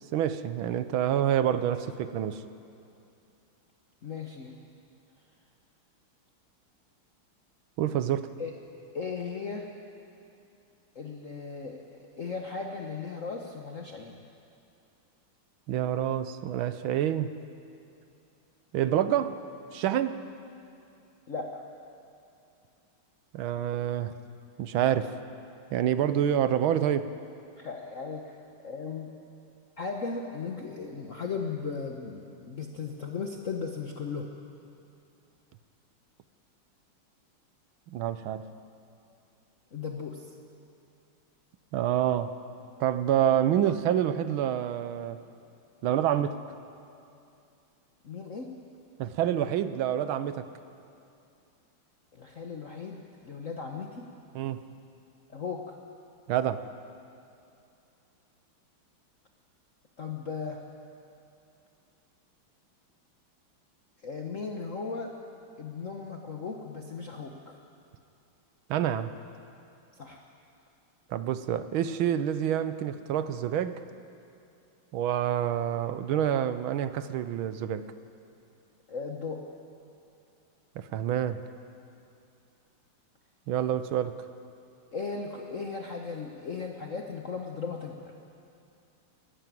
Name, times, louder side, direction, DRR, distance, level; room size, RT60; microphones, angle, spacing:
voice 1, 0.1-2.4 7.8-8.3 15.7-17.3 18.7-19.4 19.7-20.2 23.3-24.1 24.6-25.1 25.7-27.1 37.9-38.4 41.7-42.3 42.8-45.2 45.8-46.4 49.0-50.5 54.3-54.6 56.3-56.6 68.7-69.1 71.1-73.8 74.9-77.8 80.8-81.4 83.5-84.1, right 10 dB, 80° right, 12 dB, 1.5 m, -27 dB
voice 2, 4.0-4.5 8.4-9.7 10.9-11.8 12.2-14.2 21.3-21.6 27.6-29.1 29.8-34.3 39.7-40.3 48.0-48.5 52.1-54.1 55.3-55.8 60.0-60.6 64.0-65.1 65.6-67.6 69.9-70.2 78.9-79.4 84.9-88.1, left 5 dB, 45° left, 2 dB, 1.2 m, -37 dB
23.0 x 12.0 x 9.2 m, 2.6 s
omnidirectional pair, 2.3 m